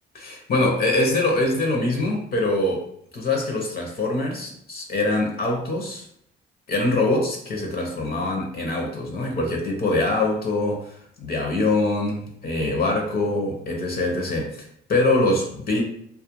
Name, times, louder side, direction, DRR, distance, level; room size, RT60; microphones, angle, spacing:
voice 1, 0.1-2.8 3.1-6.0 6.7-15.8, left 2 dB, 50° left, 1 dB, 0.7 m, -24 dB
2.3 x 2.1 x 2.9 m, 0.68 s
cardioid pair, 90°, 20 cm